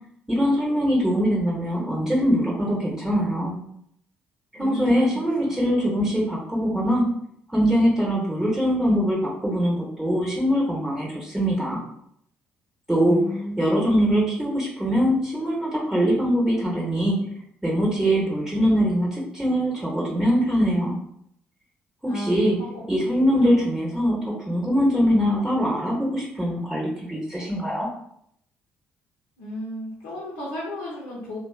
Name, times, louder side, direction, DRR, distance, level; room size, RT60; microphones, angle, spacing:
voice 1, 0.3-3.6 4.5-7.1 7.5-11.8 12.9-13.2 13.6-17.2 17.6-21.0 22.0-22.6 22.9-27.9, equal, 10° right, -4 dB, 0.8 m, -22 dB
voice 2, 4.6-5.6 13.0-13.8 22.1-22.8 23.4-23.8 29.4-31.4, left 1 dB, 80° left, -6 dB, 0.7 m, -34 dB
2.6 x 2.2 x 2.3 m, 0.71 s
hypercardioid pair, 55°, 6 cm